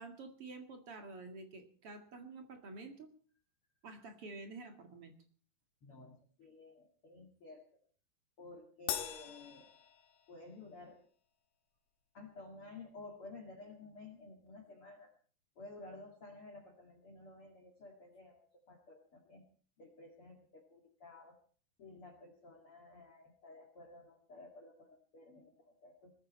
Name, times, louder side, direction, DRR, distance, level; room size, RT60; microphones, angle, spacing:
voice 1, 0.0-3.1 3.8-5.1, right 3 dB, 45° right, 6 dB, 2.0 m, -49 dB
voice 2, 5.8-7.8 8.4-9.7 10.3-11.0 12.1-15.1 15.6-19.4 19.8-21.4 21.8-26.1, left 3 dB, 40° left, 5 dB, 2.3 m, -53 dB
Crash cymbal, 8.9-10.6, left 9 dB, 70° left, 3.5 m, -42 dB
20.5 x 14.5 x 4.3 m, 0.43 s
omnidirectional pair, 5.2 m